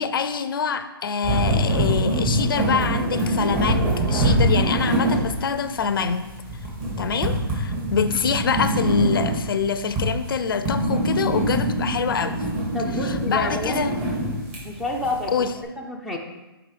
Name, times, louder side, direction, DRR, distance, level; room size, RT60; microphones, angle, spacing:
voice 1, 0.0-6.3 7.0-12.4 13.0-13.9 15.3-15.5, left 6 dB, 60° left, 11 dB, 0.4 m, -25 dB
sound 1, 1.2-15.5, right 1 dB, 30° right, 1.9 m, -24 dB
voice 2, 12.7-13.8 14.6-15.4 15.8-16.2, left 2 dB, ahead, -1 dB, 0.5 m, -28 dB
6.0 x 4.8 x 3.3 m, 1.1 s
hypercardioid pair, 145°, 13 cm